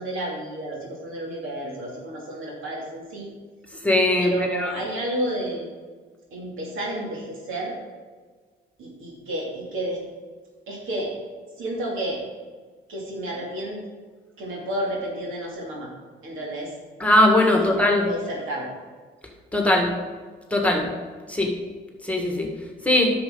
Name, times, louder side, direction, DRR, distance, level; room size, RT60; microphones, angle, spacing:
voice 1, 0.0-3.3 4.2-5.7 6.3-7.8 8.8-10.0 10.7-11.1 11.6-12.2 12.9-13.8 14.4-15.9 16.2-16.7 17.5-17.7 18.0-18.7, right 1 dB, 80° right, -3 dB, 2.9 m, -31 dB
voice 2, 3.8-4.7 17.0-18.1 19.5-19.9 20.5-20.9 21.3-21.5 22.0-22.5 22.8-23.1, left 1 dB, 5° left, 1 dB, 1.8 m, -20 dB
10.5 x 6.8 x 4.0 m, 1.5 s
cardioid pair, 90°, 20 cm